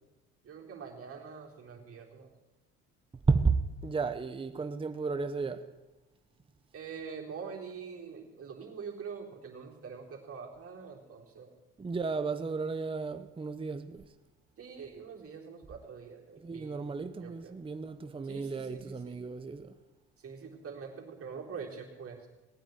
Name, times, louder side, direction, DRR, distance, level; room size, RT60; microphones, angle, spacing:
voice 1, 0.4-2.3 6.7-11.5 14.6-17.6 18.2-19.2 20.2-22.3, right 6 dB, 40° right, 3.9 m, -45 dB
voice 2, 3.3-5.7 11.8-14.1 16.4-19.7, right 4 dB, 15° right, 0.8 m, -33 dB
18.0 x 9.3 x 8.0 m
supercardioid pair, 85°, 34 cm